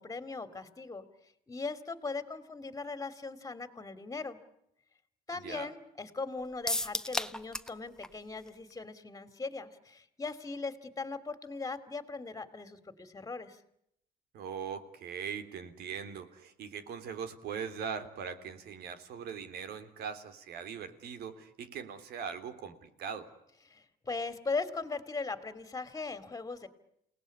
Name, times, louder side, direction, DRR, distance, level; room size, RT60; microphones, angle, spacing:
voice 1, 0.0-4.4 5.3-13.6 23.7-26.7, left 4 dB, 20° left, 13 dB, 2.9 m, -39 dB
sound 1, 6.7-7.8 8.0-8.1 8.5-8.6, left 1 dB, 5° left, 1.1 m, -33 dB
voice 2, 14.3-23.3, right 7 dB, 70° right, 11 dB, 3.3 m, -41 dB
29.0 x 19.0 x 9.9 m, 0.78 s
cardioid pair, 110°, 17 cm